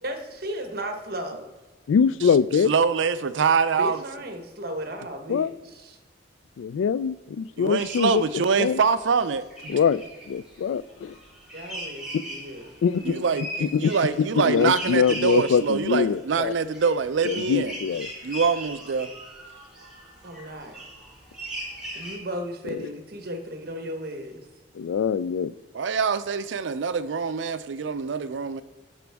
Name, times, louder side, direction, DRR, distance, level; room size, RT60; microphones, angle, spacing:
voice 1, 0.0-1.5 3.7-6.0 11.5-12.7 20.2-20.8 21.9-24.4, equal, 55° right, 1.1 m, -35 dB
voice 2, 1.9-2.7 5.3-5.5 6.6-8.2 8.6-8.8 9.7-11.2 12.1-12.2 12.8-13.2 13.6-13.9 14.3-16.5 17.2-18.1 22.7-22.9 24.7-25.5, left 6 dB, 85° left, 0.3 m, -23 dB
voice 3, 2.7-4.0 7.6-9.8 13.0-17.8 18.2-19.1 25.7-28.6, right 5 dB, 75° right, 0.5 m, -24 dB
sound 1, 7.8-9.0 9.3-22.2, right 1 dB, 5° right, 3.0 m, -39 dB
13.0 x 5.1 x 3.5 m
head